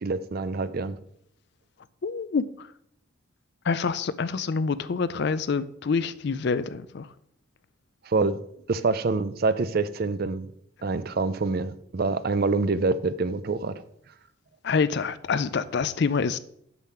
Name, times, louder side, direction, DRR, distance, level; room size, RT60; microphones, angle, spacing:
voice 1, 0.0-1.0 8.1-8.4 8.7-10.5 10.8-13.8, right 3 dB, 45° right, 0.4 m, -26 dB
voice 2, 2.0-2.7 3.7-7.1 14.6-16.4, left 5 dB, 50° left, 0.4 m, -26 dB
6.9 x 6.5 x 5.6 m
head